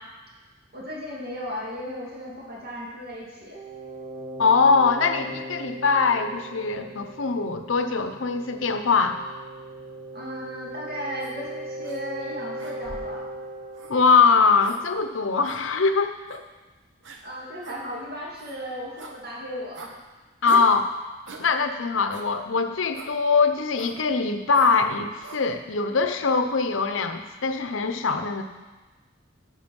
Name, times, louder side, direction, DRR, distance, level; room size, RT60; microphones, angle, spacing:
voice 1, 0.7-3.6 10.1-13.3 17.2-19.9, equal, 50° right, -4 dB, 2.5 m, -35 dB
sound 1, 3.5-15.2, right 1 dB, 25° right, 0.8 m, -39 dB
voice 2, 4.4-9.2 13.9-16.4 20.4-20.9 21.4-28.4, left 4 dB, 75° left, 8 dB, 0.7 m, -22 dB
sound 2, 11.2-11.4 11.8-12.0 12.6-13.2 13.7-13.9 14.6-14.8 15.4-15.6 16.3-16.4 17.0-17.2 17.6-17.8 18.3-18.6 19.0-19.2 19.7-19.9 20.5-20.8 21.3-21.5 22.1-22.3 22.9-23.1 23.8-24.0 24.5-24.8 25.2-25.4, right 3 dB, 65° right, 0.9 m, -41 dB
10.5 x 5.3 x 5.3 m, 1.3 s
head